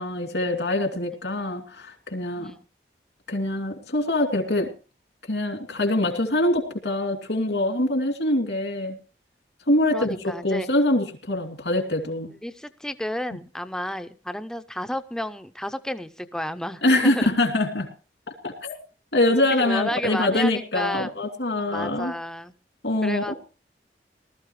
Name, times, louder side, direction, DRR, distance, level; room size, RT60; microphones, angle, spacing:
voice 1, 0.0-2.5 3.3-4.7 5.3-9.0 9.7-12.3 16.8-17.9 18.4-18.8 19.1-22.1 22.8-23.3, left 1 dB, 80° left, 3 dB, 2.8 m, -24 dB
voice 2, 9.9-10.7 12.3-17.3 19.5-21.1 21.7-22.5 23.0-23.3, equal, 5° left, 10 dB, 0.6 m, -32 dB
19.0 x 13.5 x 3.2 m, 0.35 s
head